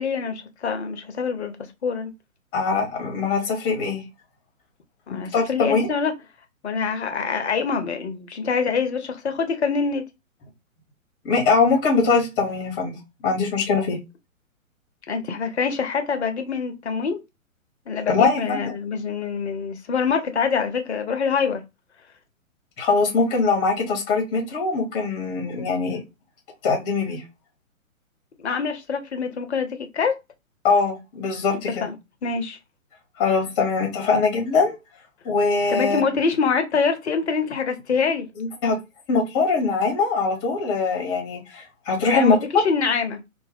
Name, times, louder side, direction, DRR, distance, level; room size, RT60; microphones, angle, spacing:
voice 1, 0.0-1.6 1.8-2.1 5.1-6.1 6.6-10.0 15.1-17.2 17.9-21.6 28.4-30.2 31.8-31.9 32.2-32.6 35.7-38.3 42.1-43.2, left 5 dB, 50° left, 0.8 m, -25 dB
voice 2, 2.5-4.0 5.1-5.9 11.2-13.0 13.2-14.0 18.1-18.7 22.8-26.0 26.6-27.2 30.6-31.9 33.2-34.8 35.2-36.0 38.4-38.8 39.1-42.7, left 4 dB, 20° left, 1.0 m, -22 dB
4.6 x 2.1 x 3.4 m
figure-of-eight pair, 125°, 42 cm